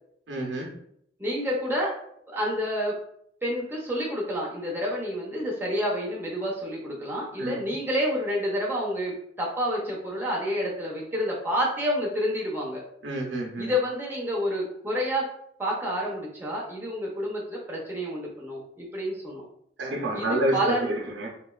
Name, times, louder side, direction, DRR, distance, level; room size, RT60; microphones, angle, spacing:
voice 1, 0.3-0.7 7.4-7.5 13.0-13.7 19.8-20.6 20.8-21.3, right 1 dB, 65° right, 0 dB, 0.6 m, -28 dB
voice 2, 1.2-1.9 2.3-3.0 3.4-12.8 13.6-15.3 15.6-19.4 20.1-20.9, equal, 10° right, -4 dB, 0.5 m, -29 dB
2.9 x 2.6 x 2.3 m, 0.70 s
head